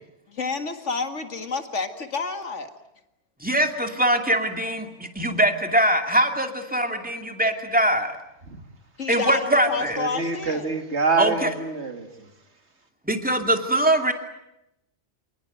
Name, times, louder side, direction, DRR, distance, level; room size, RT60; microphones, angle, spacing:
voice 1, 0.3-2.7 9.0-10.7, left 4 dB, 90° left, 2.3 m, -30 dB
voice 2, 3.4-8.1 9.1-10.0 11.2-11.5 13.1-14.1, right 1 dB, 5° right, 2.5 m, -22 dB
voice 3, 10.0-12.3, right 4 dB, 70° right, 2.7 m, -26 dB
28.5 x 19.5 x 9.4 m
omnidirectional pair, 1.2 m